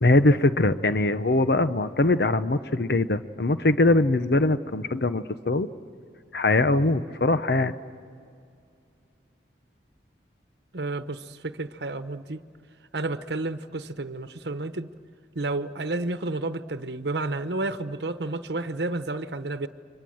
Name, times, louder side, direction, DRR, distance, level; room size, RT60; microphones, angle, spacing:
voice 1, 0.0-5.7 6.3-7.7, left 2 dB, 65° left, 12 dB, 0.8 m, -22 dB
voice 2, 10.7-12.4 12.9-14.9 15.3-19.7, right 2 dB, 75° right, 10 dB, 1.0 m, -31 dB
30.0 x 25.0 x 7.8 m, 2.3 s
head